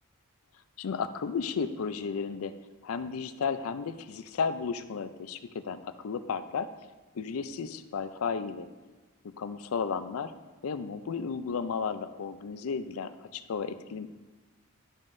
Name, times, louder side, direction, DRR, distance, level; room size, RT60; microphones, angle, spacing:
voice 1, 0.8-2.5 2.8-6.7 7.1-8.7 9.4-10.3 10.6-14.1, left 5 dB, 75° left, 11 dB, 0.4 m, -33 dB
12.0 x 5.4 x 2.6 m, 1.3 s
head